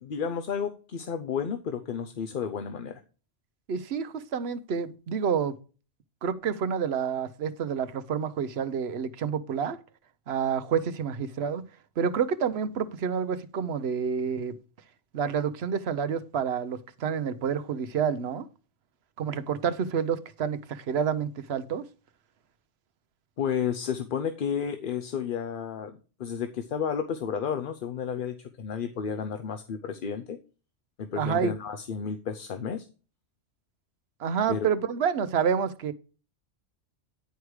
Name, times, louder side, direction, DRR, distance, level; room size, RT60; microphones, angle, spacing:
voice 1, 0.0-3.0 23.4-30.4 31.0-32.9 34.5-34.7, left 7 dB, 55° left, 0.8 m, -32 dB
voice 2, 3.7-5.5 6.2-9.8 10.3-11.6 12.0-14.6 15.1-18.5 19.2-21.9 31.1-31.5 34.2-35.9, right 7 dB, 65° right, 1.0 m, -28 dB
10.5 x 4.8 x 4.8 m
omnidirectional pair, 1.2 m